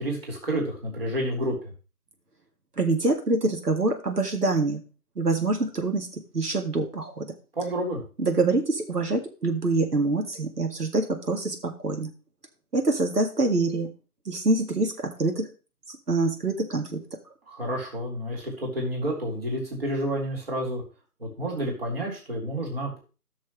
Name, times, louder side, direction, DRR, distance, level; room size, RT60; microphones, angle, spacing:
voice 1, 0.0-1.5 7.5-8.0 17.5-20.8 21.2-23.0, right 1 dB, 40° right, -2 dB, 4.0 m, -29 dB
voice 2, 2.8-4.8 5.2-7.3 8.2-12.1 12.7-13.9 14.3-15.5 15.9-17.0, right 2 dB, 75° right, 4 dB, 2.2 m, -25 dB
15.0 x 6.4 x 3.2 m, 0.34 s
figure-of-eight pair, 170°, 47 cm